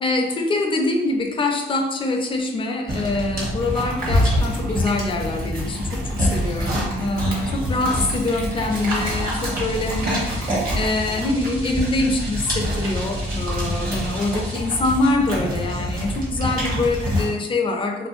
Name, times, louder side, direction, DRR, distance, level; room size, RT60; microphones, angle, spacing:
voice 1, 0.0-18.1, left 2 dB, 25° left, 3 dB, 0.4 m, -24 dB
sound 1, 2.9-17.3, equal, 45° right, 1.0 m, -25 dB
sound 2, 8.7-14.5, right 2 dB, 80° right, 0.7 m, -39 dB
2.6 x 2.4 x 2.4 m, 0.95 s
cardioid pair, 90°, 20 cm